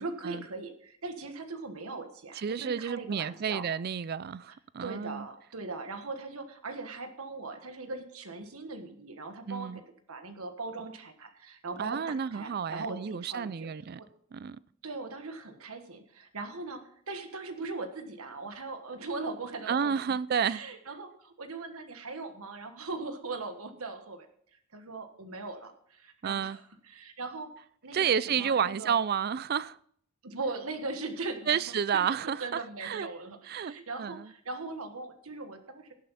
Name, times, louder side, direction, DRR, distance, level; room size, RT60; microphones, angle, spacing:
voice 1, 0.0-3.7 4.8-9.8 10.1-13.7 14.0-14.1 14.8-20.0 20.4-24.3 24.7-27.5 27.8-28.9 30.2-35.9, right 3 dB, 75° right, 1.4 m, -40 dB
voice 2, 2.3-5.3 9.5-9.8 11.8-14.0 14.3-14.6 19.7-20.6 26.2-26.6 27.9-29.8 31.5-33.1 33.5-34.3, right 7 dB, 45° right, 0.3 m, -31 dB
17.5 x 7.6 x 4.2 m
head